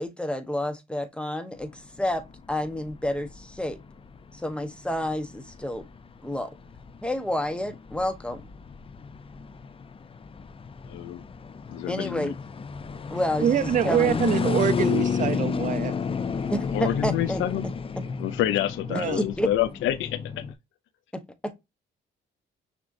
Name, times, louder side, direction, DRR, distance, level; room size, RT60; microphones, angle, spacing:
voice 1, 0.0-3.8 4.3-5.8 6.2-6.5 7.0-8.4 11.9-12.3 13.1-13.5 13.8-14.2 16.5-17.4 19.1-19.5 21.4-21.6, left 1 dB, 5° left, 0.9 m, -29 dB
sound 1, 1.6-20.5, left 6 dB, 25° left, 0.5 m, -32 dB
voice 2, 10.9-11.2 11.7-12.3 16.7-17.7 18.2-20.2, left 12 dB, 80° left, 0.5 m, -27 dB
voice 3, 13.4-15.9 18.9-19.2, right 9 dB, 40° right, 0.5 m, -24 dB
6.1 x 2.9 x 2.5 m
cardioid pair, 90°, 20 cm